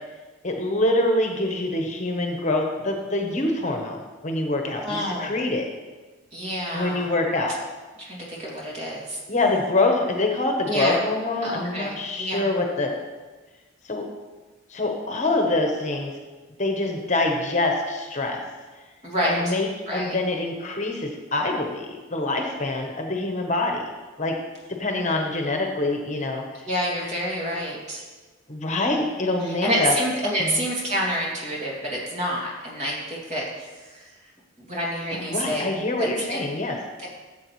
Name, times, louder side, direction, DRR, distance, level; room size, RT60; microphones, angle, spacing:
voice 1, 0.4-5.6 6.7-7.5 9.3-12.9 13.9-14.1 14.7-16.1 16.6-18.4 19.2-19.7 19.9-23.8 24.2-24.4 24.7-26.4 28.5-29.9 30.4-30.5 35.2-36.8, left 2 dB, 40° left, 3 dB, 1.0 m, -25 dB
voice 2, 4.8-5.3 6.3-7.1 8.0-9.2 10.7-11.0 11.4-12.5 19.0-19.5 19.9-20.2 26.6-28.1 29.4-34.1 34.6-35.7 36.0-36.4, equal, 35° right, -4 dB, 2.5 m, -28 dB
13.5 x 7.6 x 3.2 m, 1.3 s
head